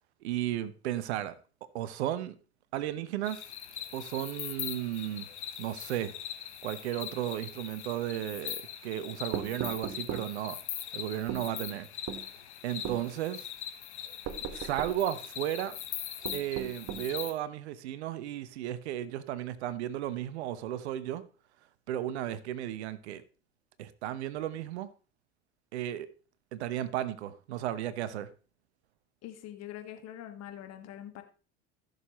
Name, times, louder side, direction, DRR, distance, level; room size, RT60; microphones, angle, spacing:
voice 1, 0.2-1.3 1.7-2.4 2.7-3.4 3.9-5.3 5.6-6.1 6.6-10.6 10.9-11.9 12.6-13.5 14.5-15.8 16.3-21.2 21.9-23.2 23.8-24.9 25.7-26.1 26.5-28.3, right 12 dB, 70° right, 0.9 m, -34 dB
sound 1, 3.2-17.3, left 10 dB, 80° left, 1.1 m, -41 dB
sound 2, 9.3-10.3 11.3-11.5 12.1-12.3 12.8-13.0 14.2-15.0 16.2-17.1, right 9 dB, 45° right, 1.2 m, -37 dB
voice 2, 29.2-31.2, left 11 dB, 50° left, 1.6 m, -44 dB
15.0 x 6.7 x 3.0 m
hypercardioid pair, 70°, 34 cm